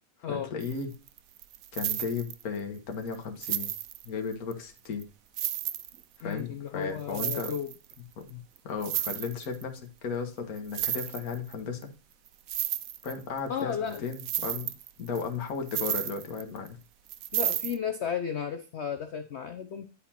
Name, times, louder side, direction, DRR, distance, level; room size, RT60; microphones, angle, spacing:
voice 1, 0.3-0.9 1.7-3.7 4.0-5.1 6.2-7.5 8.3-11.8 13.0-14.7 15.0-16.8, left 5 dB, 55° left, 4 dB, 1.7 m, -35 dB
sound 1, 0.6-0.8 1.1-2.6 3.1-3.2 3.4-4.5 5.0-5.1 5.4-6.4 7.0-7.9 8.3-8.4 8.6-9.6 10.6-11.5 11.8-11.9 12.3-13.6 13.9-16.7 17.1-17.8, right 12 dB, 80° right, 0.7 m, -33 dB
voice 2, 6.2-7.7 13.5-14.1 17.3-19.9, left 8 dB, 80° left, 8 dB, 0.6 m, -34 dB
9.9 x 4.2 x 4.2 m, 0.35 s
omnidirectional pair, 2.0 m